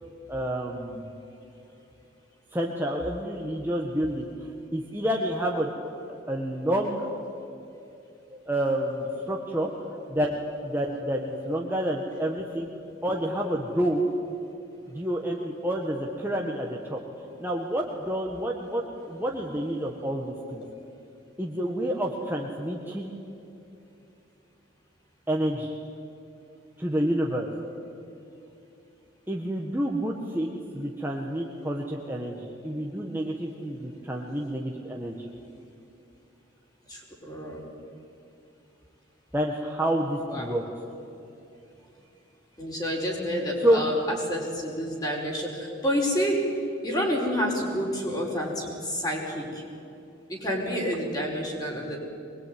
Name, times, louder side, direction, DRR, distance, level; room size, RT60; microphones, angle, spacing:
voice 1, 0.3-1.1 2.5-5.7 6.3-7.1 8.3-9.7 10.1-12.7 13.0-14.1 14.9-17.0 17.4-20.6 21.4-23.2 25.3-25.8 26.8-27.5 29.3-35.3 39.3-40.6 43.6-43.8, right 1 dB, 10° right, -1 dB, 1.6 m, -29 dB
voice 2, 36.9-37.6 40.2-40.6 42.6-46.4 46.8-49.6 50.3-52.0, equal, 20° left, -1 dB, 5.1 m, -29 dB
24.0 x 21.5 x 9.5 m, 2.7 s
head